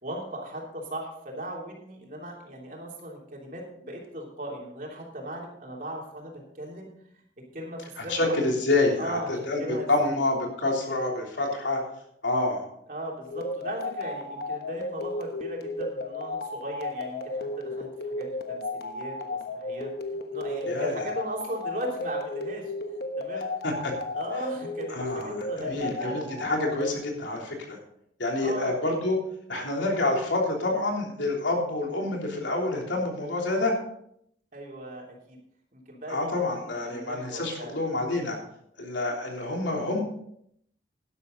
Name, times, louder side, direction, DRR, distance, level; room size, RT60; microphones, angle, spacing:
voice 1, 0.0-6.9 7.1-7.2 7.5-8.4 9.0-10.2 12.9-19.9 20.3-23.7 24.1-26.3 28.4-28.8 34.5-35.4 35.7-37.8, right 1 dB, 45° right, -1 dB, 3.2 m, -38 dB
voice 2, 8.0-9.6 9.9-11.8 12.2-12.6 20.7-21.0 23.6-23.9 24.9-27.8 28.2-29.2 29.5-33.7 36.1-38.4 38.8-40.0, left 2 dB, 85° left, 0 dB, 3.3 m, -27 dB
sound 1, 13.2-26.9, left 2 dB, 55° left, 1.2 m, -34 dB
12.0 x 11.0 x 4.0 m, 0.71 s
head